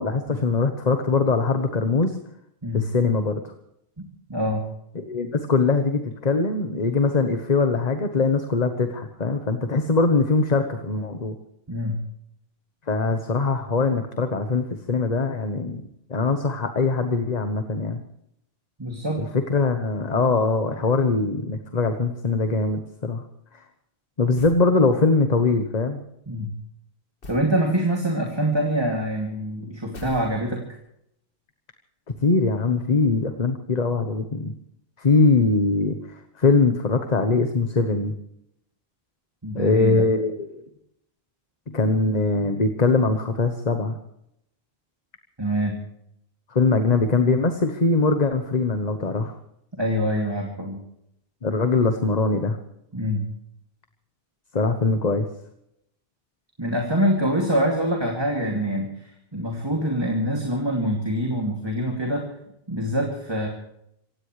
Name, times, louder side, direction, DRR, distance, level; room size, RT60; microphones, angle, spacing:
voice 1, 0.0-2.2 2.7-3.5 4.9-11.4 12.9-15.8 16.1-18.0 19.2-23.2 23.5-23.6 24.2-26.0 32.2-34.5 35.0-38.1 39.5-40.6 41.7-44.0 46.5-49.3 51.4-52.6 54.5-55.3, left 3 dB, 40° left, 7 dB, 1.3 m, -22 dB
voice 2, 4.0-4.7 11.7-12.0 18.8-19.2 26.3-26.6 27.3-30.7 39.4-40.1 45.4-45.8 49.8-50.8 52.9-53.3 56.6-62.3 62.7-63.5, equal, 25° right, 1 dB, 2.6 m, -25 dB
sound 1, 24.3-24.7 27.2-27.5 29.9-30.7, left 2 dB, 65° left, 1.9 m, -42 dB
26.5 x 17.0 x 3.3 m, 0.77 s
omnidirectional pair, 1.0 m